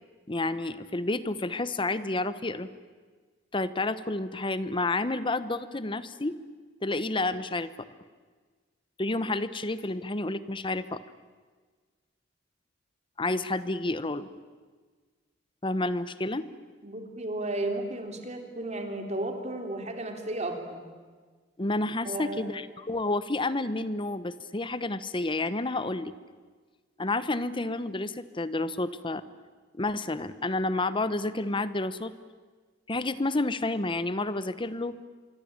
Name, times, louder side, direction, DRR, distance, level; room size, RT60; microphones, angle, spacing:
voice 1, 0.3-2.7 3.5-6.4 6.8-7.7 9.0-11.0 13.2-14.3 15.6-16.5 21.6-26.1 27.0-29.2 29.7-32.1 32.9-34.9, left 2 dB, 25° left, 14 dB, 1.0 m, -30 dB
voice 2, 16.8-20.8 22.0-22.5, right 2 dB, 40° right, 4 dB, 3.5 m, -34 dB
26.0 x 23.5 x 8.9 m, 1.5 s
head